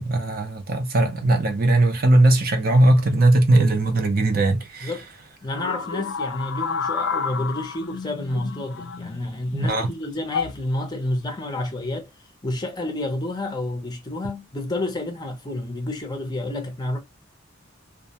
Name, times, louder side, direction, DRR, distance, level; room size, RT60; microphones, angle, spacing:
voice 1, 0.0-4.9 9.5-9.9, right 2 dB, 45° right, 0.5 m, -19 dB
voice 2, 5.4-12.1 12.4-17.0, left 1 dB, 20° left, 0.5 m, -29 dB
sound 1, 5.5-9.4 10.3-10.6 11.6-11.9, left 5 dB, 70° left, 0.4 m, -30 dB
2.3 x 2.1 x 2.7 m
head